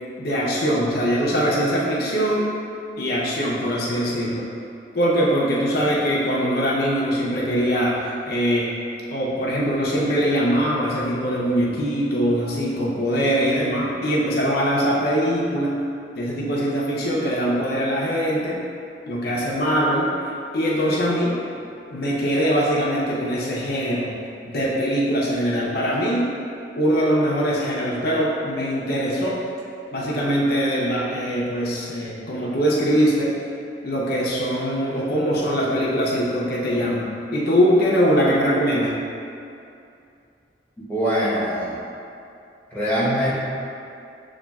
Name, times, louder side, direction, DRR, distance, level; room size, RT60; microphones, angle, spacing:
voice 1, 0.2-2.5 3.0-4.5 4.9-8.7 9.1-15.7 16.1-18.6 19.1-20.1 20.5-21.4 21.9-24.1 24.5-26.3 26.8-29.4 29.9-33.3 33.8-39.0, equal, 60° left, -5 dB, 0.6 m, -22 dB
voice 2, 40.9-41.8 42.7-43.3, equal, 10° left, -8 dB, 0.9 m, -22 dB
7.1 x 2.4 x 2.3 m, 2.6 s
head